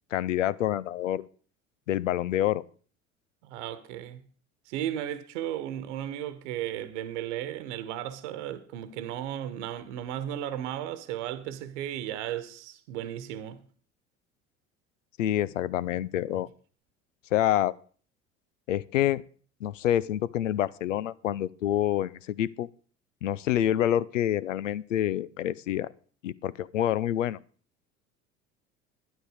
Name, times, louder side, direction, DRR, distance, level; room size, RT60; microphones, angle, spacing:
voice 1, 0.1-1.3 1.9-2.6 15.2-16.5 17.3-17.7 18.7-19.2 19.6-22.7 23.2-25.9 26.2-27.4, left 12 dB, 80° left, 0.6 m, -27 dB
voice 2, 3.4-4.2 4.7-13.6, right 11 dB, 65° right, 1.2 m, -35 dB
12.0 x 10.0 x 4.9 m
figure-of-eight pair, 65°, 37 cm